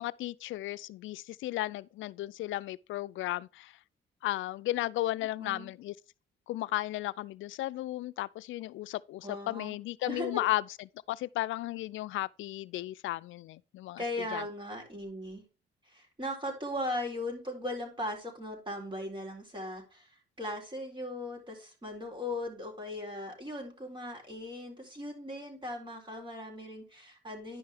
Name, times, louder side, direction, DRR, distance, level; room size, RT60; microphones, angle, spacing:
voice 1, 0.0-3.7 4.2-5.9 6.5-10.6 11.1-14.0 14.3-14.4, left 16 dB, 80° left, 0.5 m, -34 dB
voice 2, 5.4-5.7 9.2-9.7 10.0-10.4 14.0-15.4 15.9-27.6, left 1 dB, 25° right, 4.0 m, -38 dB
10.5 x 5.5 x 3.5 m
cardioid pair, 90°, 20 cm